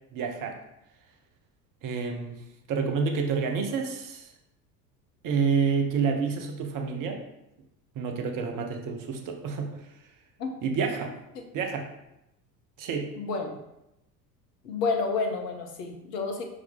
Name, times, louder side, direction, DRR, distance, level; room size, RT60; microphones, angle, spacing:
voice 1, 0.1-0.6 1.8-2.4 2.7-4.3 5.2-7.2 7.9-9.9 10.6-11.1 11.5-11.9 12.8-13.0, right 5 dB, 40° right, 4 dB, 1.0 m, -28 dB
voice 2, 13.1-13.6 14.6-16.4, left 4 dB, 70° left, 4 dB, 1.1 m, -30 dB
5.8 x 4.9 x 3.5 m, 0.86 s
figure-of-eight pair, 70°, 50 cm